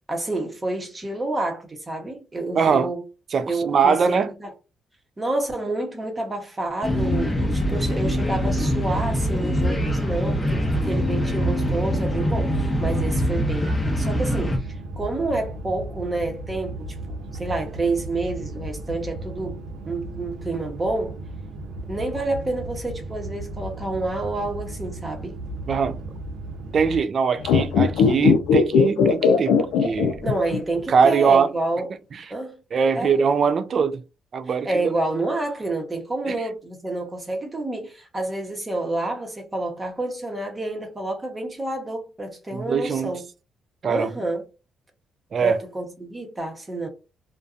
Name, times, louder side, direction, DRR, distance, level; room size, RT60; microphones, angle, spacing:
voice 1, 0.1-3.0 3.5-4.5 5.2-21.2 21.9-25.4 30.2-31.9 32.3-32.6 32.9-33.1 34.6-43.2 43.9-44.4 45.4-46.9, right 2 dB, 20° right, 0.8 m, -29 dB
voice 2, 2.6-2.9 3.3-4.3 25.7-26.0 26.7-30.3 30.9-31.5 32.1-32.2 32.7-34.0 34.3-34.9 36.3-36.4 42.5-43.1 43.8-44.1 45.3-45.6, right 6 dB, 50° right, 0.4 m, -22 dB
sound 1, 6.8-14.6, equal, 15° left, 0.7 m, -23 dB
sound 2, 10.1-27.0, right 2 dB, 75° right, 0.8 m, -35 dB
sound 3, 27.4-30.8 31.1-31.2, left 6 dB, 90° left, 0.4 m, -18 dB
2.6 x 2.2 x 2.4 m
cardioid pair, 90°, 0 cm